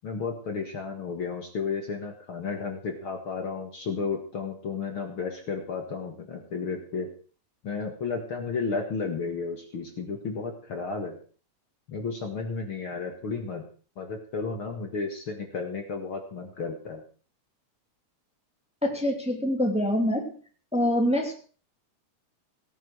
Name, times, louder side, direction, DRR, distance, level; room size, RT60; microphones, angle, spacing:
voice 1, 0.0-7.1 7.6-11.2 11.9-13.6 14.0-17.0, left 4 dB, 50° left, 4 dB, 2.4 m, -33 dB
voice 2, 18.8-20.3 20.7-21.3, equal, ahead, 2 dB, 2.5 m, -25 dB
17.5 x 9.3 x 6.2 m, 0.41 s
omnidirectional pair, 3.3 m